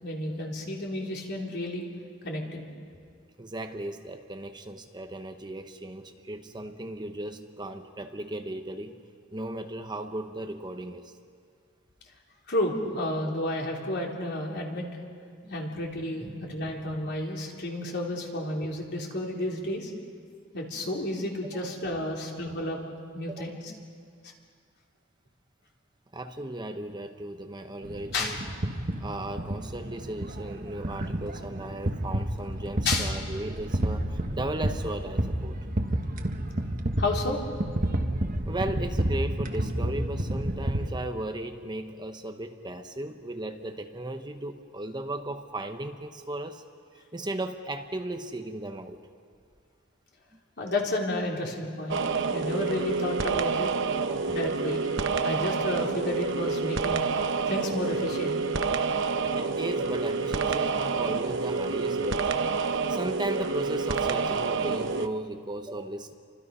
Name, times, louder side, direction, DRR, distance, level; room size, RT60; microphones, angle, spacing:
voice 1, 0.0-1.8 2.2-2.6 12.5-14.9 15.5-19.9 20.5-22.8 23.1-23.6 28.1-28.4 32.9-33.1 37.0-37.4 50.6-52.0 52.3-53.7 54.3-54.9 55.2-57.1 57.5-58.4, left 1 dB, 55° left, -1 dB, 3.7 m, -31 dB
voice 2, 3.4-9.0 9.3-11.1 15.4-15.6 16.2-16.4 21.4-21.6 23.3-23.5 26.1-28.4 29.0-35.6 38.5-46.6 46.9-49.1 54.0-54.3 59.3-62.4 62.9-66.1, right 1 dB, 20° right, 6 dB, 0.9 m, -36 dB
sound 1, 27.8-40.9, right 1 dB, 45° right, 1.4 m, -30 dB
sound 2, 51.9-65.1, right 4 dB, 65° right, 0.9 m, -28 dB
30.0 x 25.0 x 5.6 m, 2.1 s
head